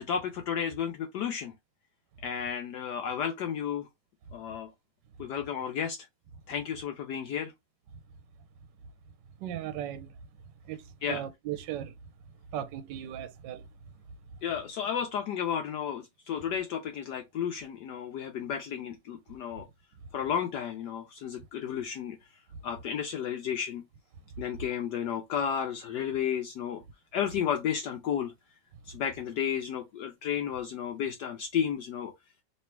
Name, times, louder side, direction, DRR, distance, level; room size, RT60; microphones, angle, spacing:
voice 1, 0.0-1.5 2.2-3.9 4.3-4.7 5.2-6.0 6.5-7.5 11.0-11.3 14.4-19.7 20.1-22.2 22.6-23.8 24.4-26.8 27.1-28.3 28.9-32.1, left 8 dB, 70° left, 1.1 m, -32 dB
voice 2, 9.4-10.1 10.7-10.8 11.1-11.9 12.5-13.6, right 11 dB, 75° right, 1.1 m, -36 dB
3.2 x 3.0 x 4.4 m
omnidirectional pair, 2.1 m